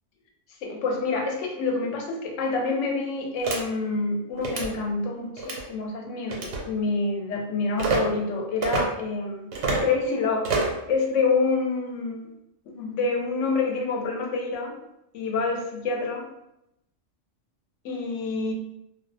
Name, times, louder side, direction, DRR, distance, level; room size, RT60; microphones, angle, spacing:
voice 1, 0.6-9.5 9.8-10.5 10.9-12.3 12.7-14.7 15.1-16.2 17.8-18.5, left 4 dB, 80° left, 0 dB, 0.9 m, -27 dB
sound 1, 3.4-3.6 4.4-4.7 5.4-5.6 6.3-6.6 7.8-8.0 8.6-8.8 9.5-9.9 10.4-10.8, right 3 dB, 85° right, 0.9 m, -26 dB
2.3 x 2.0 x 2.6 m, 0.84 s
omnidirectional pair, 1.3 m